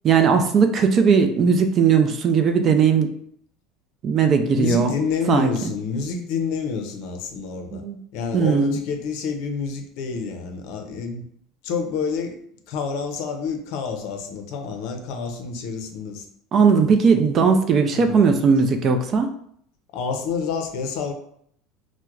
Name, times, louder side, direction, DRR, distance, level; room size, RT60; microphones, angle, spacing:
voice 1, 0.0-3.1 4.0-4.9 5.3-5.5 7.7-8.0 8.3-8.8 16.5-19.3, right 6 dB, 35° right, 6 dB, 0.4 m, -18 dB
voice 2, 4.5-7.8 8.1-11.3 11.6-12.4 12.7-16.3 17.9-18.2 19.9-21.1, left 5 dB, 65° left, 5 dB, 0.5 m, -28 dB
4.4 x 2.1 x 2.4 m, 0.66 s
supercardioid pair, 135°, 0 cm